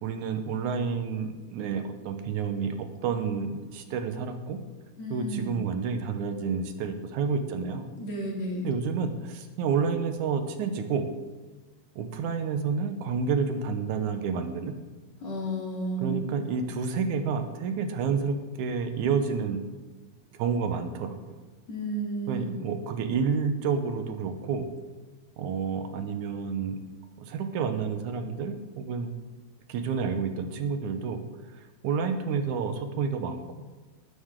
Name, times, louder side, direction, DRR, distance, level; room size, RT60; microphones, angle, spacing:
voice 1, 0.0-4.6 5.1-7.9 8.6-11.1 12.0-14.7 16.0-19.6 20.3-21.3 22.3-24.7 25.4-26.8 27.2-29.1 29.7-31.2 31.8-33.4, right 5 dB, 80° right, 7 dB, 2.4 m, -29 dB
voice 2, 5.0-5.6 7.9-8.7 15.2-16.2 21.7-22.5, right 1 dB, 60° left, -3 dB, 4.1 m, -32 dB
20.0 x 9.7 x 3.8 m, 1.2 s
omnidirectional pair, 3.4 m